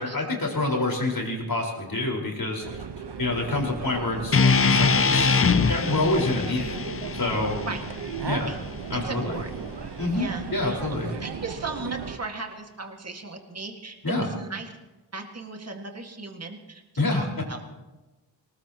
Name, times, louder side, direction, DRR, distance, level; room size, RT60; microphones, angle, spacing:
voice 1, 0.0-2.8 3.2-6.8 7.1-7.6 8.3-8.5 8.9-9.4 10.0-11.1 14.0-14.3 17.0-17.2, left 2 dB, 50° left, -1 dB, 4.8 m, -27 dB
sound 1, 2.6-12.2, right 6 dB, 65° right, 1.1 m, -36 dB
sound 2, 4.3-8.5, left 5 dB, 30° left, 0.5 m, -23 dB
voice 2, 8.9-9.7 10.1-14.7 15.1-16.8 17.1-17.6, right 3 dB, 35° right, 3 dB, 1.9 m, -37 dB
23.0 x 19.5 x 3.0 m, 1.1 s
wide cardioid pair, 70°, 45 cm